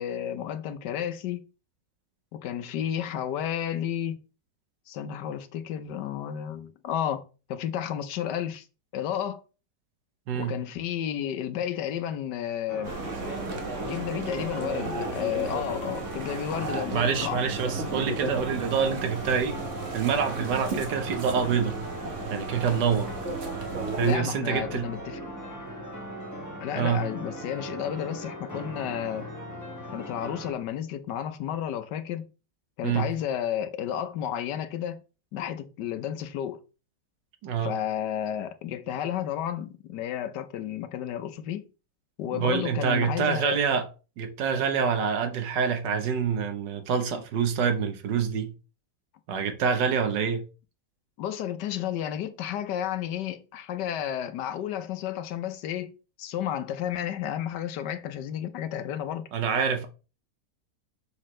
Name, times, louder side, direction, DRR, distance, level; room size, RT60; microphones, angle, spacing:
voice 1, 0.0-1.4 2.3-4.2 4.9-7.2 7.5-8.7 8.9-9.4 10.3-12.9 13.8-17.4 24.0-25.2 26.6-29.3 29.9-32.3 32.8-35.0 35.3-36.6 37.6-41.6 42.2-43.6 51.2-59.3, left 10 dB, 75° left, 1.4 m, -32 dB
voice 2, 10.3-10.6 16.9-19.6 19.9-21.8 22.3-23.1 24.0-24.9 26.7-27.0 32.8-33.1 37.4-37.7 42.3-43.9 44.2-48.5 49.3-50.4 59.3-59.9, right 6 dB, 85° right, 1.7 m, -26 dB
sound 1, 12.7-30.5, equal, 10° left, 1.6 m, -39 dB
sound 2, 12.8-24.2, right 3 dB, 45° right, 1.4 m, -34 dB
6.4 x 5.9 x 3.2 m
omnidirectional pair, 1.9 m